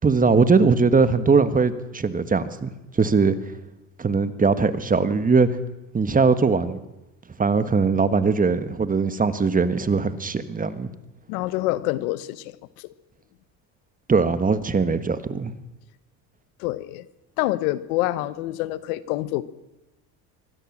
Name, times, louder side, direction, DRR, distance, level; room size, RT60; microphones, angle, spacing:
voice 1, 0.0-2.7 3.0-3.3 4.0-5.5 5.9-6.8 7.4-10.9 14.1-15.5, right 4 dB, 20° right, 12 dB, 1.4 m, -20 dB
voice 2, 11.3-12.9 16.6-17.0 17.4-19.4, left 17 dB, 90° left, 16 dB, 1.1 m, -27 dB
23.5 x 16.0 x 7.4 m, 0.99 s
supercardioid pair, 105°, 42 cm